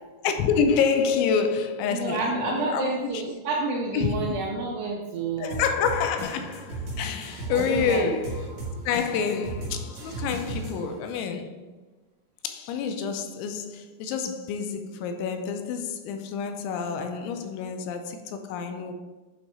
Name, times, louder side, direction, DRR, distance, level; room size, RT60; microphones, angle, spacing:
voice 1, 0.2-3.2 3.9-4.4 5.4-8.5 8.9-11.6 12.4-18.9, left 6 dB, 85° left, 2.9 m, -28 dB
voice 2, 1.9-5.6 7.5-8.2, right 3 dB, 80° right, 2.4 m, -29 dB
sound 1, 5.5-11.0, right 2 dB, 55° right, 2.1 m, -35 dB
7.9 x 3.2 x 4.2 m
omnidirectional pair, 5.3 m